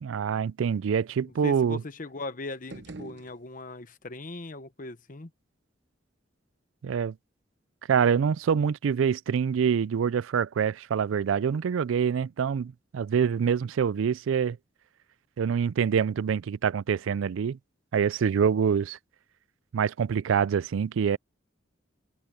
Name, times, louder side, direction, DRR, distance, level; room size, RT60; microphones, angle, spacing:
voice 1, 0.0-1.8 6.8-7.1 7.9-14.6 15.4-17.6 17.9-19.0 19.7-21.2, right 7 dB, 80° right, 0.4 m, -25 dB
voice 2, 1.3-5.3, left 3 dB, 45° left, 1.0 m, -39 dB
sound 1, 2.5-4.0, right 2 dB, 60° right, 1.0 m, -46 dB
open air
head